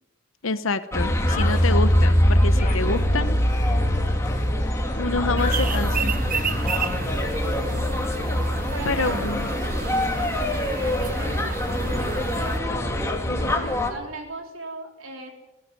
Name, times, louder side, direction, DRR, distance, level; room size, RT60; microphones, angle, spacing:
voice 1, 0.4-3.4 5.0-6.1 8.9-9.5 13.2-13.7, left 3 dB, 75° left, 11 dB, 0.9 m, -27 dB
sound 1, 0.9-13.9, equal, 15° left, 2.4 m, -23 dB
sound 2, 1.3-1.7 2.6-5.0 5.4-5.9 6.3-6.6 7.0-7.3, left 5 dB, 40° left, 1.9 m, -37 dB
sound 3, 5.4-12.6, right 5 dB, 45° right, 1.1 m, -32 dB
voice 2, 7.2-7.9 8.7-9.3 9.7-10.2 10.8-12.6 13.6-15.3, right 3 dB, 85° right, 3 dB, 3.8 m, -39 dB
19.5 x 15.5 x 9.5 m, 0.99 s
head